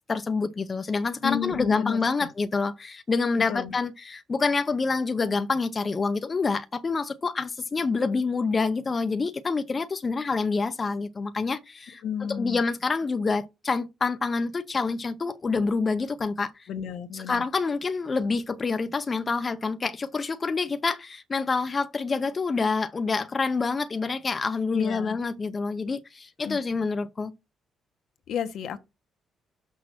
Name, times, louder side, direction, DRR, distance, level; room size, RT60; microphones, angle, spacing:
voice 1, 0.1-16.7 17.1-27.3, left 4 dB, 35° left, 0.7 m, -27 dB
voice 2, 1.2-2.0 3.5-3.7 12.0-12.6 16.7-17.4 24.7-25.2 26.4-26.6 28.3-28.8, left 8 dB, 75° left, 1.2 m, -31 dB
6.3 x 5.8 x 6.1 m
cardioid pair, 90°, 0 cm